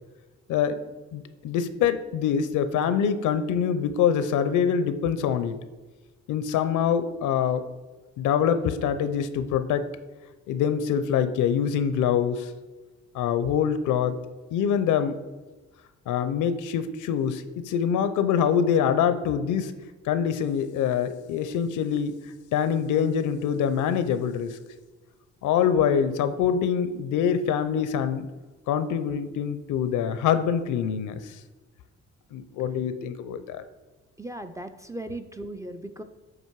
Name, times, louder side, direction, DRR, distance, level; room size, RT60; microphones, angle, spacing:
voice 1, 0.5-0.8 1.1-5.6 6.3-7.7 8.2-9.9 10.5-12.5 13.1-14.2 14.5-15.1 16.1-19.7 20.0-22.1 22.5-24.6 25.4-28.3 28.7-31.3 32.3-33.6, left 8 dB, 80° left, 11 dB, 0.6 m, -25 dB
voice 2, 34.2-36.0, right 1 dB, 10° right, 8 dB, 0.3 m, -37 dB
7.5 x 3.0 x 4.5 m, 1.2 s
cardioid pair, 90°, 30 cm